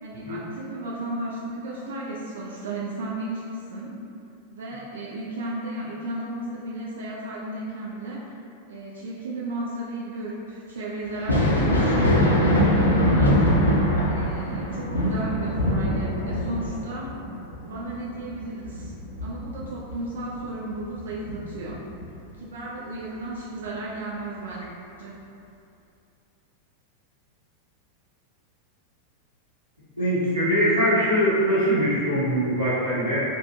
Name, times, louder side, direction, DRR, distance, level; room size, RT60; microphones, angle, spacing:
voice 1, 0.0-4.0 4.5-8.3 8.7-13.7 14.1-17.1 17.6-18.9 19.2-21.8 22.4-24.7 25.0-25.2, right 2 dB, 65° right, -6 dB, 0.3 m, -34 dB
Thunder, 11.1-20.4 20.8-22.0 23.6-23.7 24.5-24.6, equal, 80° left, 0.4 m, -23 dB
voice 2, 30.0-33.2, equal, 90° right, -13 dB, 0.8 m, -22 dB
2.7 x 2.1 x 3.0 m, 2.6 s
figure-of-eight pair, 90°, 0 cm